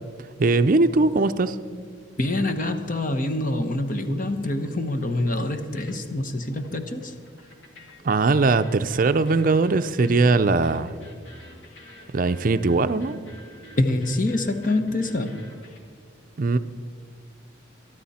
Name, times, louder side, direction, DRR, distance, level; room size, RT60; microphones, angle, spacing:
voice 1, 0.4-1.6 8.0-10.9 12.1-13.1 16.4-16.6, right 3 dB, 45° right, 10 dB, 0.5 m, -20 dB
sound 1, 1.7-15.8, equal, 75° left, 2.2 m, -50 dB
voice 2, 2.2-7.1 13.8-15.5, left 2 dB, 45° left, 8 dB, 1.1 m, -25 dB
23.0 x 12.5 x 4.3 m, 2.1 s
head